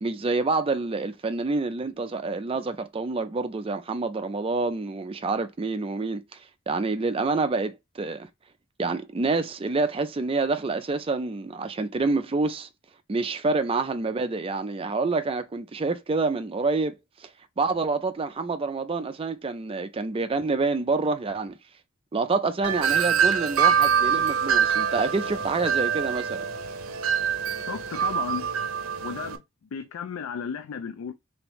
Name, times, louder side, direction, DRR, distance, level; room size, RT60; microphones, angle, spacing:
voice 1, 0.0-8.3 8.8-12.7 13.1-16.9 17.2-17.3 17.6-21.6 22.1-26.4, right 3 dB, 25° right, 0.4 m, -27 dB
Wind chime, 22.6-29.4, right 7 dB, 90° right, 0.5 m, -25 dB
voice 2, 27.7-28.5 29.0-29.4 29.7-31.1, left 6 dB, 90° left, 0.4 m, -34 dB
3.5 x 3.4 x 3.0 m
head